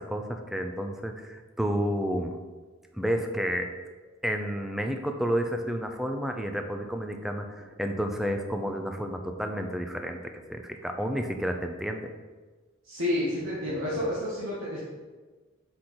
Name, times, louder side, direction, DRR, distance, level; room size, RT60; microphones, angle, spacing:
voice 1, 0.0-2.4 2.9-3.7 4.2-12.1, equal, ahead, 4 dB, 0.4 m, -31 dB
voice 2, 12.8-14.8, left 1 dB, 75° right, -8 dB, 1.5 m, -30 dB
6.1 x 5.0 x 4.2 m, 1.3 s
head